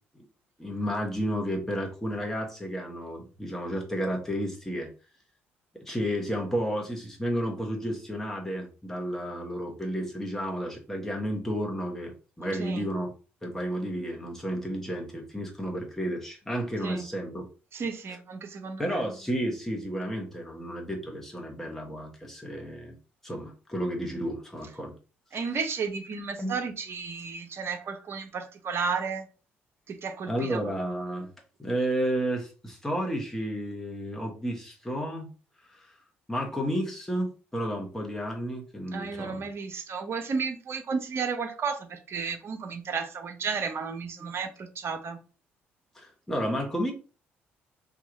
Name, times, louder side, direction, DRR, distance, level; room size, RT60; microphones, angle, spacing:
voice 1, 0.6-4.9 5.8-13.1 13.4-17.5 18.8-22.9 23.2-24.9 25.3-25.4 26.4-26.6 30.3-31.3 31.6-35.3 35.7-35.9 36.3-39.5 44.2-44.3 45.9-46.9, equal, 5° left, 1.0 m, -32 dB
voice 2, 17.7-19.0 25.3-29.3 29.9-30.6 38.9-45.2, right 5 dB, 45° right, 0.7 m, -33 dB
2.8 x 2.3 x 3.9 m
figure-of-eight pair, 50°, 6 cm